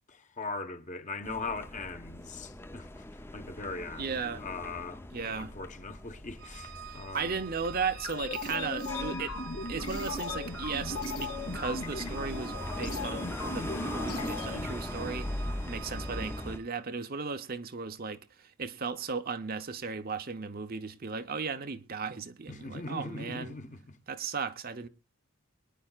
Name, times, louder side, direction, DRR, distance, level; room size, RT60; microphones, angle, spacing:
voice 1, 0.1-3.0 3.3-7.4 22.5-24.0, left 3 dB, 35° left, 1.1 m, -40 dB
sound 1, 1.2-16.6, left 1 dB, 10° left, 0.5 m, -40 dB
voice 2, 3.9-4.5 5.1-5.5 6.8-9.4 9.7-23.6 24.1-24.9, right 5 dB, 40° right, 0.7 m, -36 dB
Organ, 6.4-16.8, right 9 dB, 65° right, 1.4 m, -48 dB
sound 2, 7.9-14.7, left 3 dB, 90° left, 2.6 m, -38 dB
23.5 x 10.0 x 2.3 m
head